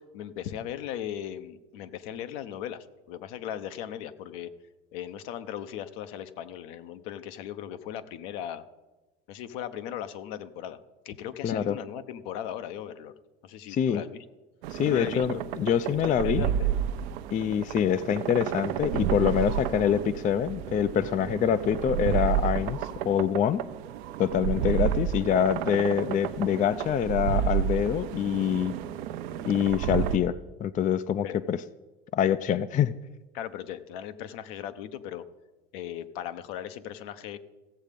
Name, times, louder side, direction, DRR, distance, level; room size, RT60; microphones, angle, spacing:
voice 1, 0.0-4.5 4.9-8.6 9.3-10.8 11.0-13.1 13.4-14.2 14.8-15.4 16.1-16.7 29.3-29.6 31.2-31.4 33.3-35.2 35.7-37.4, left 10 dB, 70° left, 10 dB, 0.8 m, -38 dB
voice 2, 11.4-11.7 13.7-14.0 14.7-16.5 17.3-22.8 23.0-23.6 24.2-28.8 29.5-30.3 30.6-31.6 32.1-32.9, left 9 dB, 25° left, 14 dB, 0.4 m, -25 dB
sound 1, 14.6-30.2, right 10 dB, 75° right, 0.7 m, -31 dB
15.0 x 7.2 x 5.2 m, 1.1 s
hypercardioid pair, 85°, 31 cm